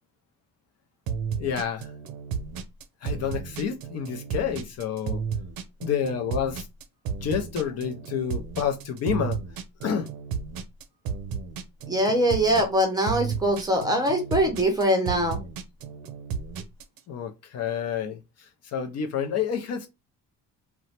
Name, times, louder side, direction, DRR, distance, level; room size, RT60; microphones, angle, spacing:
sound 1, 1.1-17.0, right 6 dB, 80° right, 0.6 m, -33 dB
voice 1, 1.4-1.9 3.0-5.2 5.8-6.7 7.2-9.4 9.8-10.1 17.1-19.9, left 7 dB, 50° left, 0.5 m, -29 dB
voice 2, 11.9-15.4, equal, 10° right, 0.5 m, -23 dB
2.9 x 2.1 x 2.8 m
cardioid pair, 165°, 35 cm